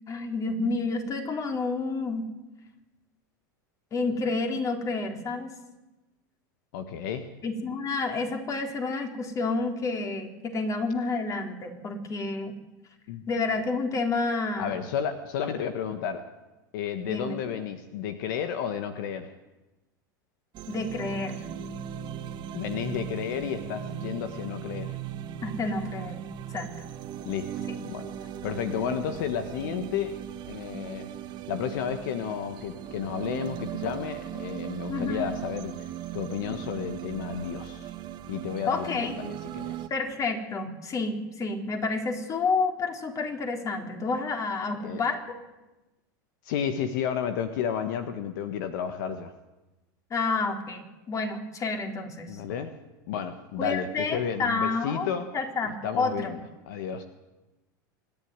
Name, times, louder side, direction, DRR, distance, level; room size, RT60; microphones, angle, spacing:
voice 1, 0.1-2.3 3.9-5.5 7.4-12.5 13.3-14.7 17.0-17.4 20.7-21.4 25.4-26.2 26.5-26.7 27.7-27.8 34.9-35.4 38.7-39.1 39.9-45.4 50.1-52.4 53.6-55.1 55.3-56.4, left 3 dB, 30° left, 4 dB, 3.8 m, -29 dB
voice 2, 6.7-7.3 13.1-13.2 14.6-16.3 16.7-19.3 22.5-25.0 27.2-30.1 30.5-31.1 31.5-35.9 36.1-37.9 38.3-39.9 44.8-45.0 46.4-49.3 52.3-52.7 53.1-55.3 55.7-56.4 56.7-57.0, left 8 dB, 70° left, 9 dB, 1.5 m, -32 dB
sound 1, 20.5-39.9, right 10 dB, 45° right, 1.6 m, -38 dB
26.0 x 11.0 x 9.6 m, 1.1 s
hypercardioid pair, 105°, 11 cm